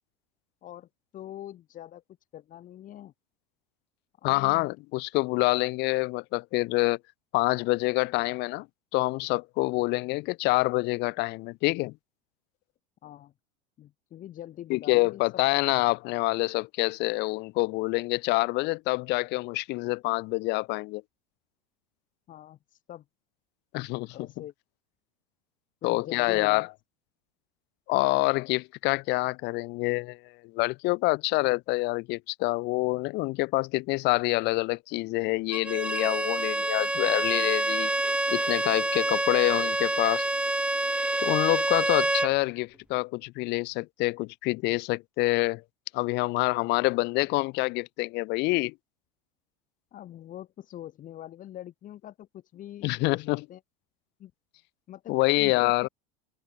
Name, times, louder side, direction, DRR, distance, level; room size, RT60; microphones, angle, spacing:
voice 1, 0.6-2.0 2.3-3.1 4.2-4.7 13.0-13.3 13.8-15.2 22.3-23.0 24.1-24.5 25.8-26.7 49.9-53.2 53.5-53.6 54.2-54.3 54.9-55.7, left 12 dB, 40° left, 2.3 m, -43 dB
voice 2, 4.2-7.0 7.3-8.7 8.9-11.9 14.7-21.0 23.7-24.3 25.8-26.7 27.9-37.9 38.3-40.2 41.2-45.6 45.9-48.7 52.8-53.4 55.1-55.9, left 23 dB, 60° left, 1.8 m, -26 dB
Bowed string instrument, 35.5-42.4, right 1 dB, 5° right, 1.4 m, -27 dB
hypercardioid pair, 100°, 20 cm